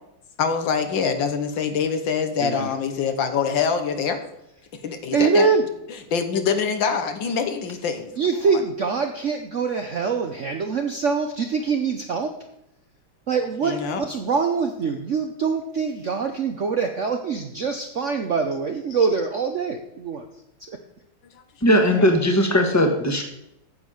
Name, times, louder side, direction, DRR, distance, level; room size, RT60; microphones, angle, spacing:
voice 1, 0.4-4.2 4.8-5.5 6.1-8.1 13.6-14.0 22.0-22.1, left 6 dB, 70° left, 7 dB, 1.8 m, -24 dB
voice 2, 5.1-5.7 8.2-12.4 13.3-20.3 20.7-20.8, right 5 dB, 55° right, 4 dB, 0.8 m, -24 dB
voice 3, 21.6-23.2, equal, 10° left, 4 dB, 1.1 m, -18 dB
9.5 x 7.4 x 6.4 m, 0.81 s
omnidirectional pair, 2.2 m